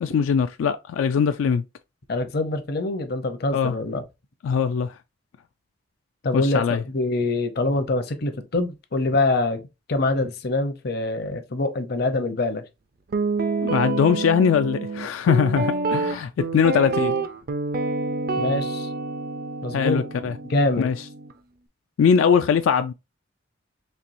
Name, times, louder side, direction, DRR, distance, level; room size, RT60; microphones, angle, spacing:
voice 1, 0.0-1.6 3.5-3.7 4.4-5.0 6.3-6.8 13.6-17.2 19.7-20.3 20.8-20.9 22.0-22.9, left 7 dB, 85° left, 0.3 m, -21 dB
voice 2, 2.1-4.0 6.2-9.6 9.9-12.6 18.4-18.9 19.6-20.1 20.5-20.9, left 2 dB, 55° left, 0.7 m, -24 dB
Guitar, 13.1-21.3, right 3 dB, 50° right, 0.4 m, -27 dB
4.4 x 3.3 x 2.5 m
head